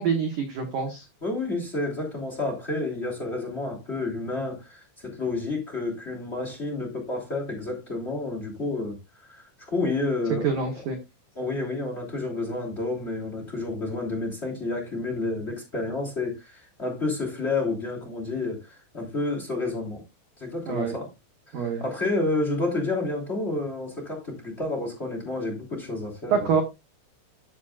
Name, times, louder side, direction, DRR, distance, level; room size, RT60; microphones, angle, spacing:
voice 1, 0.0-1.0 10.4-11.0 20.7-20.9 21.5-21.8 26.3-26.6, right 6 dB, 75° right, 1.8 m, -26 dB
voice 2, 1.2-9.0 9.3-10.6 11.3-20.0 20.4-21.1 21.6-26.5, left 2 dB, 15° left, 2.5 m, -30 dB
12.5 x 7.3 x 2.5 m
omnidirectional pair, 5.7 m